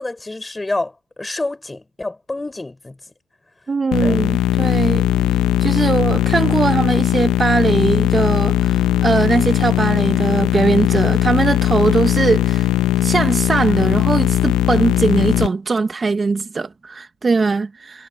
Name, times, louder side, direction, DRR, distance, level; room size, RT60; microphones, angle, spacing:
voice 1, 0.0-3.0 4.0-4.2, left 2 dB, 15° left, 4.2 m, -28 dB
voice 2, 3.7-5.0 5.6-12.7 13.0-18.1, right 4 dB, 25° right, 0.8 m, -20 dB
sound 1, 3.9-15.5, left 14 dB, 80° left, 0.7 m, -18 dB
cardioid pair, 120°, 0 cm